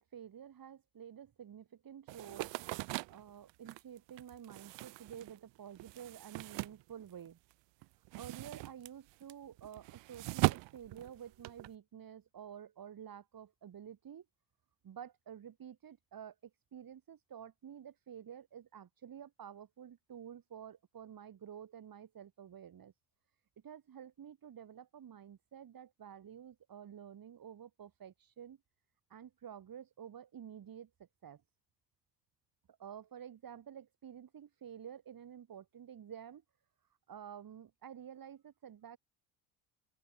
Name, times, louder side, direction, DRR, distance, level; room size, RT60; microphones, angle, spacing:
voice 1, 0.0-2.5 3.1-7.4 8.2-14.3 14.8-22.9 23.6-28.6 29.1-31.4 32.8-36.4 37.1-39.0, right 9 dB, 50° right, 4.0 m, -50 dB
sound 1, 2.1-7.5 7.8-11.7, right 22 dB, 70° right, 1.9 m, -39 dB
open air
hypercardioid pair, 55°, 45 cm